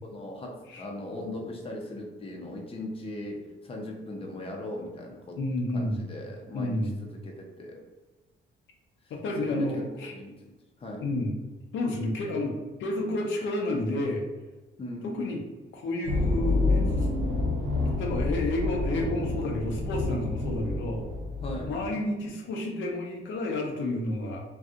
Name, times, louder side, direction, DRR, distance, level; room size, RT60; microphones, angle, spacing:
voice 1, 0.0-5.4 5.7-7.8 9.4-10.3 10.8-11.1 14.8-15.1 21.4-21.7, left 1 dB, 30° left, 0 dB, 0.7 m, -39 dB
voice 2, 5.4-6.0 6.5-7.0 9.1-10.1 11.0-11.4 11.7-14.2 15.0-15.4 15.7-17.1 18.0-21.0 21.6-24.4, left 1 dB, 75° left, 1 dB, 0.7 m, -30 dB
sound 1, 16.0-22.0, left 2 dB, 80° right, 0.8 m, -28 dB
2.6 x 2.3 x 3.6 m, 1.2 s
cardioid pair, 90°, 20 cm